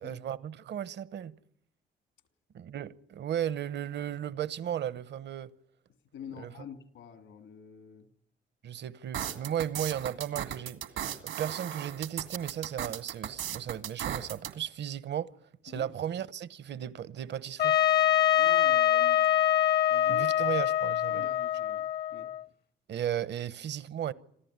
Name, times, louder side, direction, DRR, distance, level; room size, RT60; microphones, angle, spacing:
voice 1, 0.0-1.4 2.5-5.5 6.4-6.5 8.6-10.8 11.2-15.3 15.6-17.8 20.1-21.3 22.9-24.1, right 10 dB, 60° right, 0.9 m, -35 dB
voice 2, 6.1-8.1 15.7-15.9 18.3-19.3 19.9-20.3 21.1-22.3, left 7 dB, 80° left, 2.9 m, -47 dB
sound 1, 9.1-14.5, right 10 dB, 85° right, 2.2 m, -36 dB
Trumpet, 17.6-22.4, left 12 dB, 50° left, 0.9 m, -25 dB
27.0 x 14.5 x 9.6 m
cardioid pair, 90°, 20 cm